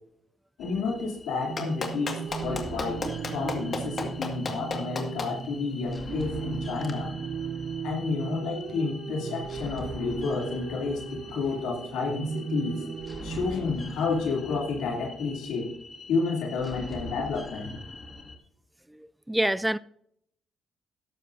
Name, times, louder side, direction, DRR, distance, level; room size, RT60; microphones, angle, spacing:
voice 1, 0.6-7.1 7.8-12.8 13.2-15.7 16.1-17.7, left 4 dB, 85° left, 2.8 m, -30 dB
sound 1, 0.6-18.4, left 2 dB, 25° left, 1.9 m, -43 dB
sound 2, 1.5-13.5, right 6 dB, 60° right, 0.6 m, -36 dB
Clapping, 1.6-5.3 6.8-6.9, left 4 dB, 40° left, 1.9 m, -32 dB
voice 2, 18.9-19.8, right 1 dB, 5° right, 0.3 m, -27 dB
13.5 x 11.5 x 2.7 m
cardioid pair, 90°, 0 cm